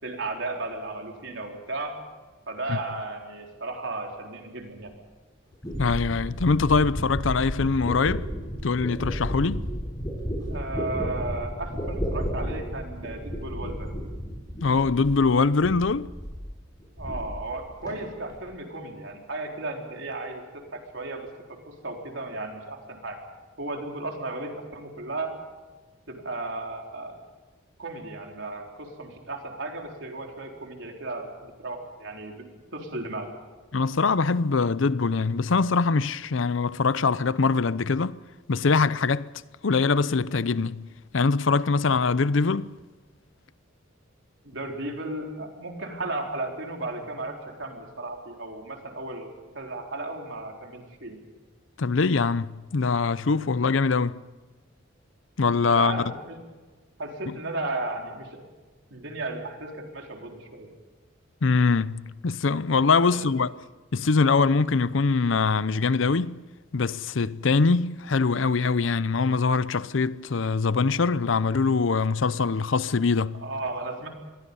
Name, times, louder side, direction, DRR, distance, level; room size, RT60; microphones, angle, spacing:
voice 1, 0.0-2.0 2.5-4.9 10.5-13.9 17.0-20.4 20.7-21.3 21.7-23.2 23.6-25.3 26.1-27.2 27.8-33.3 44.4-51.2 55.6-56.4 57.0-58.4 58.9-60.7 63.1-63.3 73.4-74.1, right 2 dB, 70° right, 4.1 m, -35 dB
sound 1, 4.9-5.0 5.6-15.3 15.6-16.5 16.7-17.6 17.8-18.4, equal, 20° left, 7.6 m, -32 dB
voice 2, 5.8-8.3 8.6-9.7 14.6-16.1 33.7-38.2 38.5-39.3 39.6-40.9 41.1-42.7 51.8-54.2 55.4-56.0 61.4-63.5 63.9-66.4 66.7-73.4, left 4 dB, 75° left, 0.6 m, -23 dB
27.0 x 22.5 x 5.5 m
head